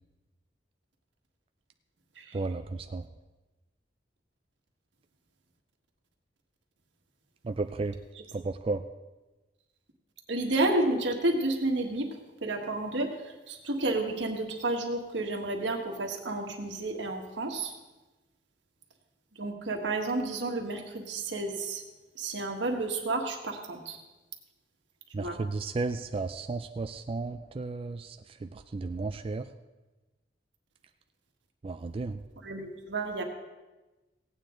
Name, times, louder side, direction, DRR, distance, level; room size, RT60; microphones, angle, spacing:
voice 1, 2.3-3.0 7.4-7.9 8.3-8.8 25.1-28.2 28.4-29.5 31.6-32.2, right 3 dB, 30° right, 7 dB, 0.4 m, -33 dB
voice 2, 10.3-13.1 13.5-17.7 19.4-21.8 22.1-24.0 25.2-25.4 32.4-33.2, right 2 dB, 90° right, 2 dB, 1.6 m, -31 dB
16.5 x 9.1 x 3.8 m, 1.1 s
head